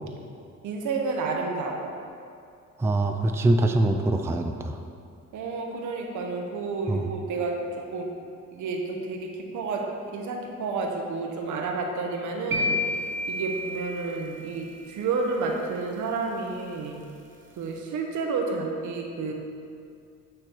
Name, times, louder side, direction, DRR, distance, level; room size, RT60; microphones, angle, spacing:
voice 1, 0.6-1.9 5.3-8.1 8.5-12.8 13.3-17.0 17.6-19.3, right 3 dB, 75° right, 1 dB, 0.9 m, -30 dB
voice 2, 2.8-4.8 6.9-7.1, right 2 dB, 10° right, 5 dB, 0.3 m, -23 dB
sound 1, 12.5-14.6, left 2 dB, 40° right, 0.7 m, -30 dB
8.7 x 3.2 x 4.4 m, 2.4 s
cardioid pair, 90°, 30 cm